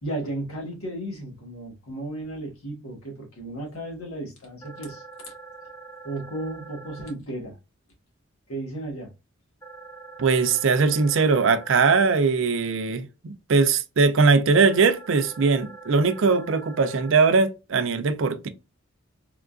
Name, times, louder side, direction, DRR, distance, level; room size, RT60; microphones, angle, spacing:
voice 1, 0.0-5.0 6.0-7.6 8.5-9.1, right 1 dB, 85° left, 1.4 m, -34 dB
sound 1, 4.6-7.1 9.6-12.1 14.6-17.1, right 3 dB, 15° left, 0.7 m, -44 dB
voice 2, 10.2-18.5, right 4 dB, 65° right, 0.5 m, -20 dB
3.6 x 2.4 x 2.3 m
head